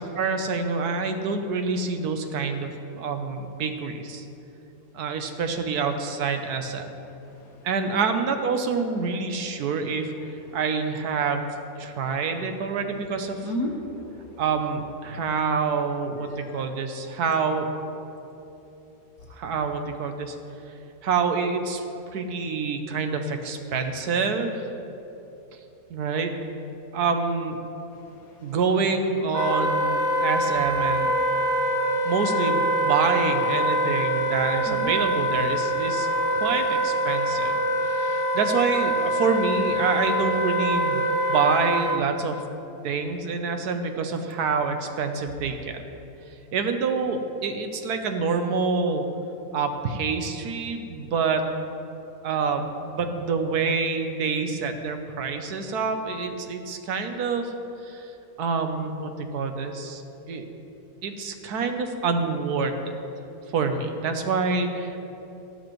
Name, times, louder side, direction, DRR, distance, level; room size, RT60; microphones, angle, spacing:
voice 1, 0.0-4.2 4.9-6.9 7.6-10.1 10.5-11.5 11.8-13.4 14.4-17.7 19.3-20.4 21.0-21.8 22.1-24.7 25.9-26.3 26.9-27.6 28.4-31.1 32.0-36.1 36.4-41.0 41.3-42.4 42.8-45.8 46.5-49.0 49.5-51.5 52.2-57.5 57.8-58.1 58.4-60.0 60.3-60.5 61.0-62.9 63.5-65.0, right 5 dB, 80° right, 6 dB, 1.3 m, -27 dB
voice 2, 7.0-8.1 9.6-10.9 11.2-11.4 11.8-12.3 13.3-14.7 15.1-15.5 16.2-16.8 27.9-28.9 30.0-30.6 31.4-32.4 33.0-33.2 34.2-35.1 35.5-36.7 44.5-44.6, left 1 dB, 65° left, 2 dB, 1.6 m, -40 dB
Wind instrument woodwind instrument, 29.3-42.0, equal, 15° right, 0.8 m, -24 dB
14.5 x 12.5 x 3.1 m, 2.9 s
omnidirectional pair, 1.7 m